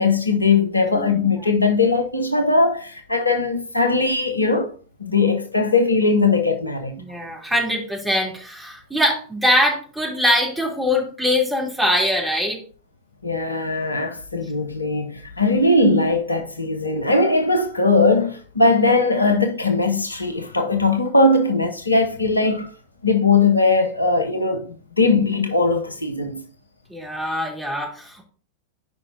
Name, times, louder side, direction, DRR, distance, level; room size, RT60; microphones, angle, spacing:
voice 1, 0.0-4.7 5.0-7.0 13.2-22.7 23.0-26.4, left 3 dB, 80° left, 0.9 m, -19 dB
voice 2, 7.0-12.6 26.9-28.2, left 1 dB, 10° right, 3.2 m, -22 dB
13.5 x 5.4 x 2.8 m
figure-of-eight pair, 90°, 0 cm